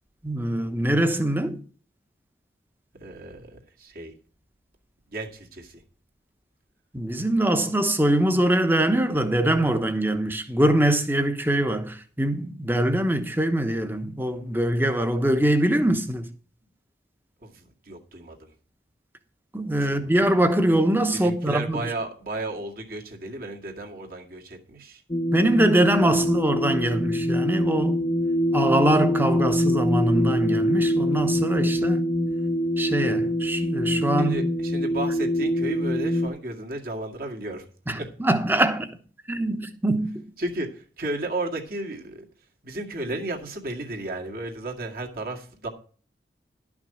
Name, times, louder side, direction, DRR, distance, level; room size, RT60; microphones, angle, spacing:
voice 1, 0.2-1.6 6.9-16.3 19.5-21.8 25.3-28.0 28.5-32.0 32.8-34.3 37.9-38.9 39.3-40.2, right 1 dB, 10° right, 1.1 m, -23 dB
voice 2, 3.0-4.1 5.1-5.8 17.4-18.5 19.7-20.0 21.1-25.0 25.9-26.3 34.2-37.7 38.0-38.1 40.4-42.3 42.6-45.7, right 2 dB, 55° right, 2.1 m, -34 dB
sound 1, 25.1-36.3, equal, 25° left, 0.9 m, -24 dB
12.0 x 6.0 x 6.6 m
head